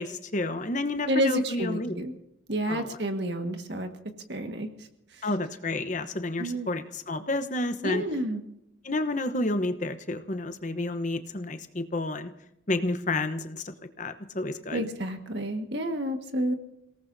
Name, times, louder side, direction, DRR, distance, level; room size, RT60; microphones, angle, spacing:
voice 1, 0.0-1.9 2.7-3.0 5.2-8.0 8.8-12.3 12.7-14.9, left 2 dB, 40° left, 9 dB, 1.0 m, -30 dB
voice 2, 1.0-2.1 2.5-3.9 4.3-4.7 6.4-6.7 7.8-8.4 14.7-16.5, right 1 dB, 60° right, 5 dB, 1.7 m, -29 dB
28.5 x 18.0 x 2.7 m, 0.80 s
head